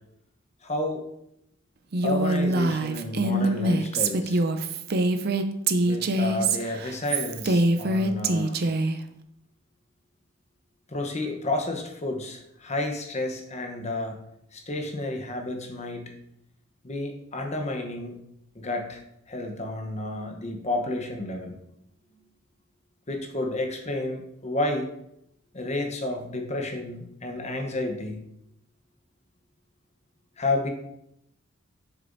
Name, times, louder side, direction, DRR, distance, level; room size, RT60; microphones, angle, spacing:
voice 1, 0.6-1.0 2.0-4.4 5.8-8.6 10.9-14.2 14.5-16.1 16.8-18.2 18.5-21.6 23.1-24.9 25.5-28.2 30.4-30.7, left 2 dB, 30° left, 2 dB, 0.9 m, -31 dB
Female speech woman speaking, 1.9-9.0, right 2 dB, 50° right, 0.5 m, -24 dB
7.4 x 6.5 x 2.6 m, 0.78 s
head